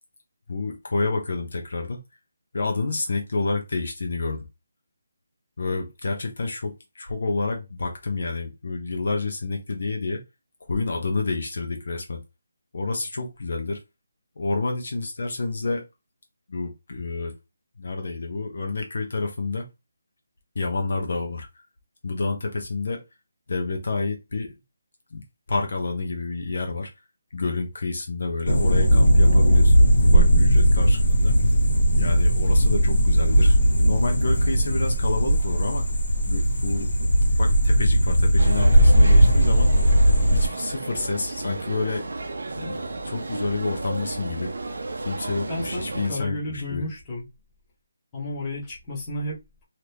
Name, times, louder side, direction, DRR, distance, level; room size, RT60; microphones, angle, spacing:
voice 1, 0.5-2.0 2.5-4.5 5.6-10.2 10.7-12.2 12.7-13.8 14.4-15.9 16.5-17.4 17.8-19.7 20.5-21.5 22.0-23.0 23.5-24.5 25.1-25.2 25.5-26.9 27.3-31.3 32.0-33.6 33.8-35.9 36.3-36.9 37.4-39.7 40.3-42.1 42.6-44.5 45.0-46.8, left 3 dB, 50° left, 0.6 m, -29 dB
sound 1, 28.5-40.5, equal, 65° left, 1.4 m, -18 dB
sound 2, 38.4-46.1, right 2 dB, 60° right, 0.6 m, -33 dB
voice 2, 45.5-47.2 48.1-49.6, left 1 dB, 10° left, 0.9 m, -32 dB
2.8 x 2.5 x 3.3 m
hypercardioid pair, 180°, 0 cm